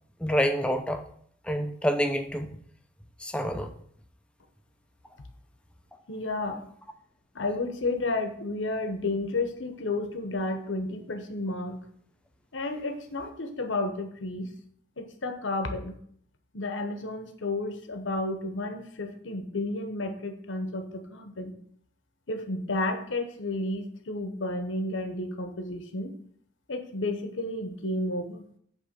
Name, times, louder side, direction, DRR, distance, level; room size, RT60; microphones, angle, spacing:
voice 1, 0.2-1.0 1.4-2.6 3.2-3.7, equal, 5° left, 6 dB, 0.6 m, -27 dB
voice 2, 6.1-6.7 7.3-11.8 12.5-14.5 15.0-15.9 16.5-21.5 22.3-26.1 26.7-28.5, left 2 dB, 75° left, 6 dB, 1.0 m, -32 dB
8.4 x 3.3 x 5.1 m, 0.63 s
head